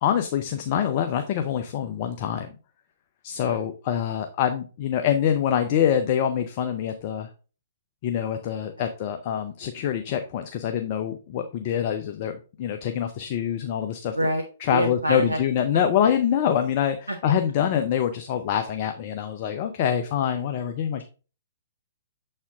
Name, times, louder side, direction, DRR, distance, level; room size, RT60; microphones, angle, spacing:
voice 1, 0.0-2.5 3.2-7.3 8.0-14.3 14.6-21.0, left 9 dB, 40° left, 7 dB, 0.6 m, -25 dB
voice 2, 14.7-15.4 17.1-17.2, right 1 dB, 90° right, 4 dB, 0.8 m, -26 dB
7.0 x 4.3 x 3.5 m, 0.35 s
figure-of-eight pair, 115°, 0 cm